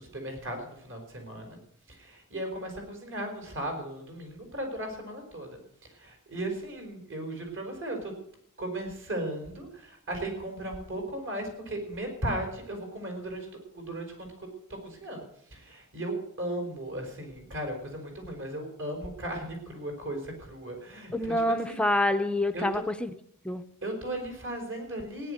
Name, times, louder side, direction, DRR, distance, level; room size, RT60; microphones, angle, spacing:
voice 1, 0.0-1.6 2.0-5.5 6.0-8.1 8.6-14.3 14.8-15.2 15.5-21.3 21.7-21.8 22.5-22.8 23.8-25.3, right 1 dB, 60° right, 3 dB, 4.8 m, -36 dB
voice 2, 21.1-23.1 23.4-23.6, left 1 dB, 5° left, 9 dB, 0.6 m, -27 dB
16.5 x 10.5 x 6.5 m, 0.74 s
head